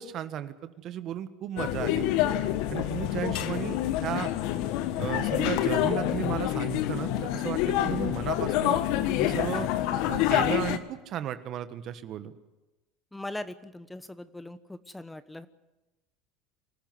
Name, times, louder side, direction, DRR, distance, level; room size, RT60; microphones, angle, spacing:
voice 1, 0.0-2.1 2.7-4.3 5.0-8.8 9.2-9.7 10.0-12.3, right 11 dB, 50° right, 11 dB, 1.5 m, -34 dB
sound 1, 1.6-10.8, left 12 dB, 65° left, 1.4 m, -27 dB
voice 2, 13.1-15.5, left 1 dB, 10° left, 13 dB, 1.1 m, -40 dB
25.5 x 13.5 x 9.6 m, 1.1 s
hypercardioid pair, 85°, 0 cm